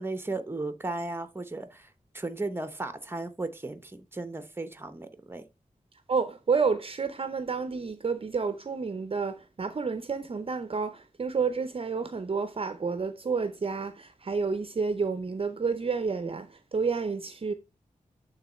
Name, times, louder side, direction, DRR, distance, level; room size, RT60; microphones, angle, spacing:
voice 1, 0.0-1.9 2.1-5.4, right 2 dB, 15° right, 0.9 m, -35 dB
voice 2, 6.1-17.5, right 5 dB, 45° right, 0.5 m, -30 dB
8.6 x 3.8 x 4.2 m
wide cardioid pair, 105°, 14 cm